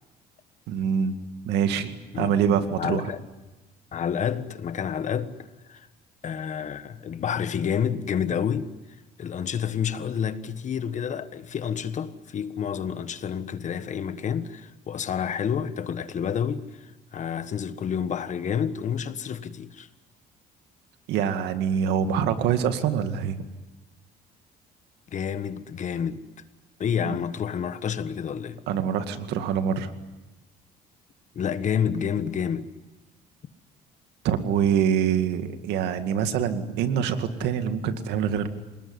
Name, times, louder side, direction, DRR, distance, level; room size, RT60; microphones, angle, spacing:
voice 1, 0.7-1.1 1.5-3.1 21.1-23.4 27.0-27.2 28.7-29.9 34.2-38.5, right 8 dB, 85° right, 2.2 m, -25 dB
voice 2, 2.8-3.2 3.9-5.3 5.7-5.9 6.2-8.7 9.2-19.9 25.1-26.2 26.8-28.6 31.3-32.7, left 8 dB, 45° left, 1.5 m, -29 dB
28.0 x 19.5 x 9.8 m
cardioid pair, 110°, 17 cm